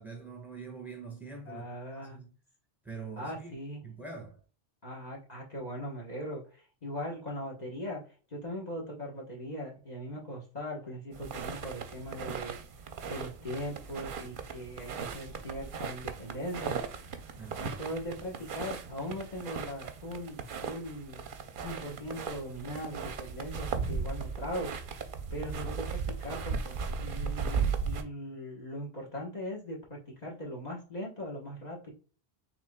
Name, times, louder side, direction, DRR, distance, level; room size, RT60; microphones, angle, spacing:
voice 1, 0.0-1.6 2.1-2.3 2.8-3.5 3.8-4.4 17.4-17.8, right 4 dB, ahead, 1.4 m, -44 dB
voice 2, 1.4-2.2 3.2-3.8 4.8-8.0 8.3-12.6 13.1-16.8 17.6-21.2 21.6-24.7 25.3-31.9, equal, 40° left, 1.3 m, -40 dB
sound 1, 11.1-28.0, right 5 dB, 55° right, 0.8 m, -37 dB
5.8 x 3.6 x 2.2 m
omnidirectional pair, 1.1 m